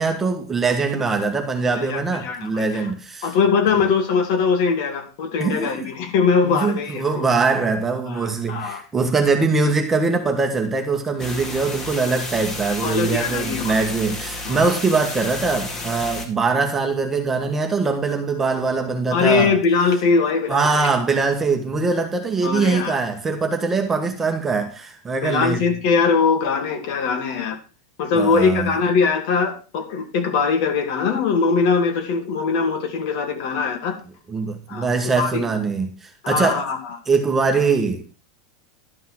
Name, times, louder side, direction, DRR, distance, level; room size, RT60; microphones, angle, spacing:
voice 1, 0.0-3.3 5.4-5.9 6.5-19.5 20.5-25.6 28.1-28.7 34.3-36.7 37.1-38.0, right 4 dB, 10° right, 1.4 m, -22 dB
voice 2, 1.7-2.9 3.2-7.3 8.1-8.8 12.8-13.8 14.4-14.7 19.1-20.9 22.4-23.0 25.2-27.6 28.0-34.0 34.7-35.5 36.2-37.0, left 5 dB, 55° left, 2.4 m, -21 dB
sound 1, 11.2-16.3, left 2 dB, 20° left, 2.0 m, -31 dB
12.0 x 5.5 x 5.9 m
supercardioid pair, 155°, 2 cm